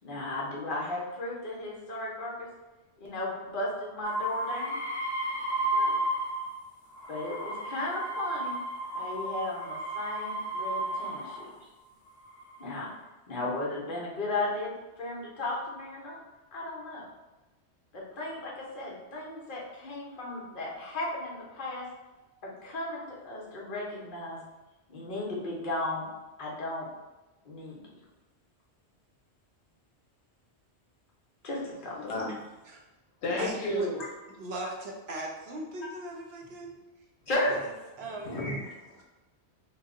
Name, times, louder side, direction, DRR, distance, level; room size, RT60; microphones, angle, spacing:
voice 1, 0.0-2.5 3.0-4.8 5.7-5.9 7.1-8.6 8.9-11.5 12.6-12.9 13.3-16.2 16.5-17.0 17.9-21.9 22.4-24.4 24.9-26.0 26.4-26.9 27.4-27.8 31.4-31.9 37.3-37.6, left 2 dB, 50° left, -4 dB, 0.9 m, -35 dB
sound 1, 4.0-6.6 6.9-11.5 12.2-12.8, right 1 dB, 20° left, 0.7 m, -33 dB
voice 2, 31.9-32.3 33.2-34.0 38.0-39.0, left 1 dB, 75° left, -2 dB, 1.1 m, -33 dB
voice 3, 33.4-33.9 34.4-36.8 37.5-37.7 38.0-38.4, right 2 dB, 70° right, 0 dB, 0.8 m, -38 dB
2.9 x 2.0 x 3.6 m, 1.1 s
omnidirectional pair, 1.1 m